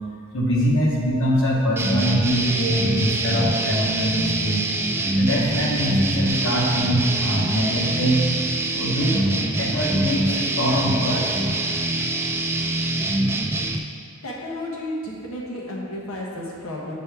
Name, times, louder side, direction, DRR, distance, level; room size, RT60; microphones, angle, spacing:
voice 1, 0.3-4.6 5.2-8.2 8.7-11.4, equal, 65° left, -4 dB, 1.3 m, -23 dB
sound 1, 1.8-13.8, right 2 dB, 10° right, 0.3 m, -24 dB
voice 2, 14.2-16.9, left 1 dB, 90° left, -3 dB, 1.2 m, -32 dB
8.2 x 4.2 x 3.4 m, 2.2 s
head